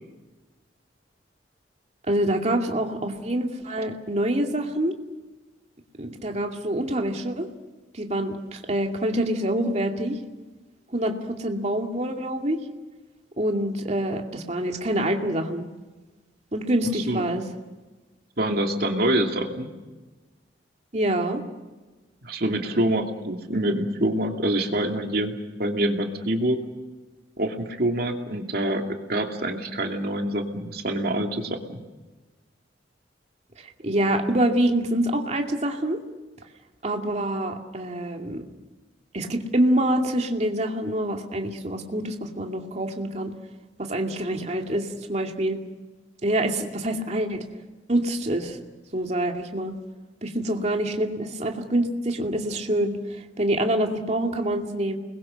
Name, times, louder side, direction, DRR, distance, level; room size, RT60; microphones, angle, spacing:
voice 1, 2.1-4.9 6.0-7.5 7.9-10.2 10.9-12.6 13.4-15.7 16.5-17.4 20.9-21.4 33.6-36.0 36.8-38.4 39.1-43.3 43.8-45.6 46.2-47.4 47.9-48.6 48.9-49.8 50.2-55.0, right 1 dB, 40° right, 3 dB, 2.4 m, -26 dB
voice 2, 16.9-17.2 18.4-19.7 22.2-26.6 27.4-28.8 29.1-31.8, right 1 dB, 55° right, 3 dB, 2.8 m, -26 dB
30.0 x 21.5 x 6.6 m, 1.2 s
head